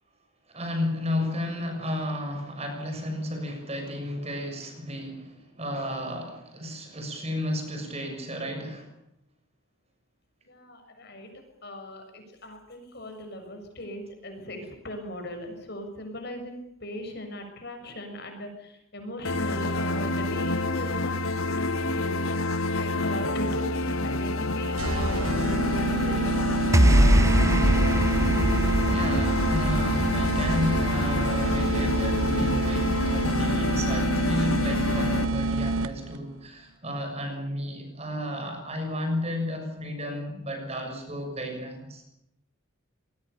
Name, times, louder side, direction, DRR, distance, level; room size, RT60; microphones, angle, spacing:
voice 1, 0.5-8.9 28.9-42.0, left 1 dB, 30° right, 4 dB, 6.7 m, -32 dB
voice 2, 10.4-21.1 21.5-22.4 22.7-26.4 26.8-28.0, left 1 dB, 50° left, 5 dB, 6.7 m, -39 dB
sound 1, 19.2-35.3, left 2 dB, 85° left, 1.7 m, -28 dB
sound 2, 24.8-36.2, right 2 dB, 85° right, 1.1 m, -28 dB
sound 3, 26.7-33.2, right 1 dB, 15° right, 0.8 m, -24 dB
26.0 x 20.5 x 6.9 m, 0.80 s
head